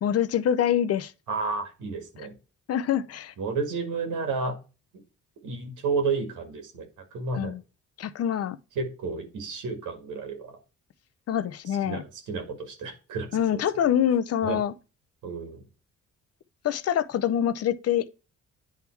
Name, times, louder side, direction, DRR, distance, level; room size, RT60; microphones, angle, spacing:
voice 1, 0.0-1.1 2.7-3.3 7.3-7.6 8.0-8.6 11.3-12.0 13.3-14.7 16.6-18.1, left 9 dB, 55° left, 0.6 m, -25 dB
voice 2, 1.3-2.3 3.4-4.6 4.9-5.0 5.4-6.9 7.1-7.5 8.8-10.6 11.8-13.6 14.4-14.6 15.2-15.6, right 4 dB, 85° right, 2.0 m, -31 dB
9.2 x 3.6 x 4.5 m
cardioid pair, 90°, 30 cm